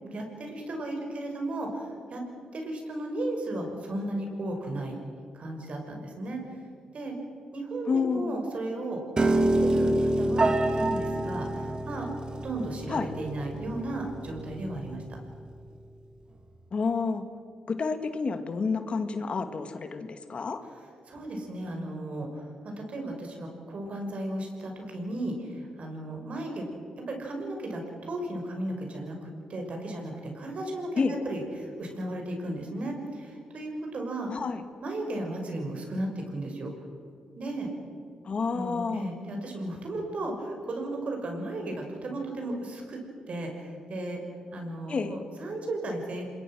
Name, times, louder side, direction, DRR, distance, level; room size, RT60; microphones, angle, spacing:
voice 1, 0.0-2.2 2.5-5.0 5.3-6.4 6.9-7.1 7.5-12.1 12.4-15.0 21.1-26.7 27.1-34.3 34.8-36.7 37.3-37.7 38.5-43.0 43.3-44.2 44.5-46.2, right 1 dB, 55° right, 2 dB, 6.1 m, -35 dB
voice 2, 7.9-8.4 12.9-13.1 16.7-17.2 17.7-20.6 31.0-31.1 34.3-34.6 38.2-39.1 44.9-45.2, left 4 dB, 50° left, 8 dB, 2.0 m, -29 dB
Piano, 9.2-15.4, right 1 dB, 35° right, 2.3 m, -27 dB
26.5 x 21.5 x 6.3 m, 2.4 s
cardioid pair, 65°, 2 cm